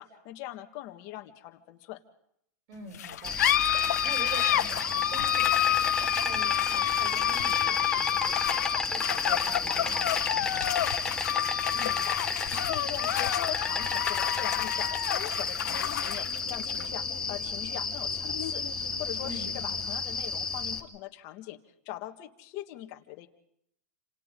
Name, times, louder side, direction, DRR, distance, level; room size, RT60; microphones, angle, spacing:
voice 1, 0.0-2.0 11.7-21.6 21.8-23.3, left 15 dB, 40° left, 5 dB, 1.6 m, -42 dB
voice 2, 2.7-5.9 6.2-8.6 8.9-11.3 19.2-19.7, right 3 dB, 45° right, 3 dB, 6.5 m, -45 dB
sound 1, 2.9-19.9, left 12 dB, 75° left, 1.2 m, -29 dB
Insect, 3.2-20.8, left 4 dB, 10° left, 1.1 m, -32 dB
29.0 x 26.5 x 3.8 m, 0.73 s
supercardioid pair, 150°, 9 cm